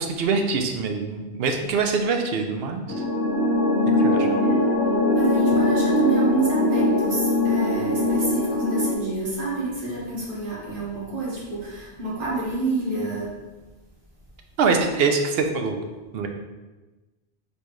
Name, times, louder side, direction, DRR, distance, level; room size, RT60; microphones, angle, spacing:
voice 1, 0.0-3.0 4.0-4.4 14.6-15.8 16.1-16.3, right 4 dB, 70° right, 5 dB, 0.8 m, -24 dB
sound 1, 2.9-8.9, left 1 dB, 70° left, 1.0 m, -21 dB
voice 2, 4.3-4.7 5.1-13.4, right 3 dB, 55° right, -6 dB, 1.3 m, -28 dB
4.2 x 3.4 x 3.1 m, 1.2 s
omnidirectional pair, 1.1 m